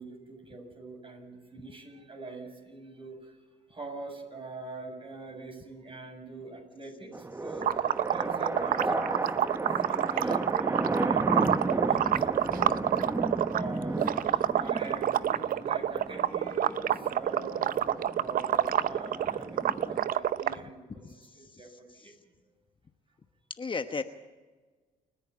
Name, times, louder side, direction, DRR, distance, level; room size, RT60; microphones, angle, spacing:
voice 1, 0.0-3.4 3.7-22.1, right 3 dB, 30° right, 3 dB, 7.3 m, -44 dB
Dogfighting Jets, 7.1-20.1, right 2 dB, 15° right, 0.9 m, -34 dB
sound 1, 7.6-13.6 14.0-20.6, right 10 dB, 60° right, 0.7 m, -27 dB
voice 2, 21.0-21.6 22.0-22.1 23.6-24.0, left 4 dB, 30° left, 8 dB, 1.2 m, -36 dB
29.0 x 10.5 x 8.7 m, 1.3 s
supercardioid pair, 65°, 17 cm